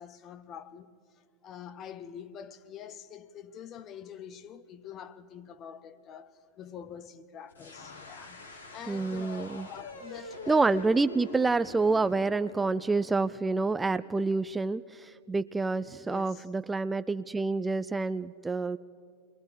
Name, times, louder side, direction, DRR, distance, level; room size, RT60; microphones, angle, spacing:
voice 1, 0.0-10.8 16.0-16.5, left 8 dB, 35° left, 1.0 m, -45 dB
Strange T.V. sound, 7.5-14.3, left 2 dB, 80° left, 2.9 m, -45 dB
voice 2, 8.9-9.7 10.5-18.8, right 3 dB, 10° right, 0.4 m, -28 dB
28.5 x 22.0 x 4.4 m
figure-of-eight pair, 90°, 0 cm